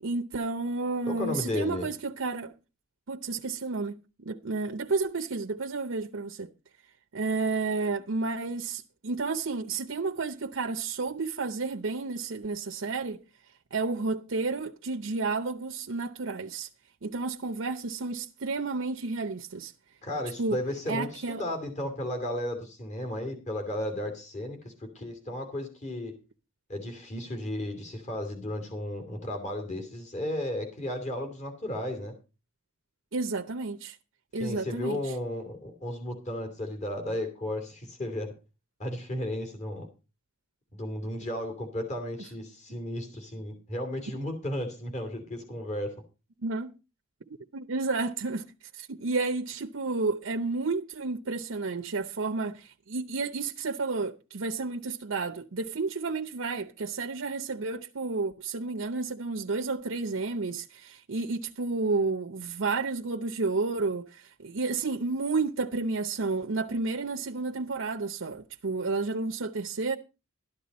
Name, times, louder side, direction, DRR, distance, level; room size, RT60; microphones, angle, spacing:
voice 1, 0.0-2.5 3.1-6.5 7.1-13.2 13.7-16.7 17.0-19.7 20.4-20.6 20.9-21.4 33.1-34.0 34.3-35.0 46.4-46.7 47.5-48.5 48.7-70.0, right 3 dB, 65° right, 0.7 m, -31 dB
voice 2, 1.1-1.9 20.0-26.1 26.7-32.1 34.3-38.3 38.8-39.9 40.7-46.0, left 1 dB, 35° left, 2.8 m, -34 dB
13.0 x 11.0 x 4.2 m
head